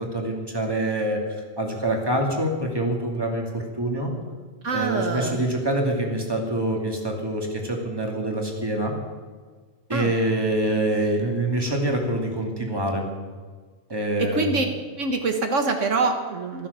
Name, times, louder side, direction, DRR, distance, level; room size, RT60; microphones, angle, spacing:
voice 1, 0.0-4.1 4.7-8.9 9.9-13.1 13.9-14.7, right 1 dB, 20° right, 1 dB, 2.6 m, -25 dB
voice 2, 4.6-5.4 9.9-10.1 14.2-14.7 15.0-16.7, right 3 dB, 75° right, 5 dB, 1.6 m, -25 dB
15.0 x 13.5 x 6.8 m, 1.5 s
omnidirectional pair, 1.3 m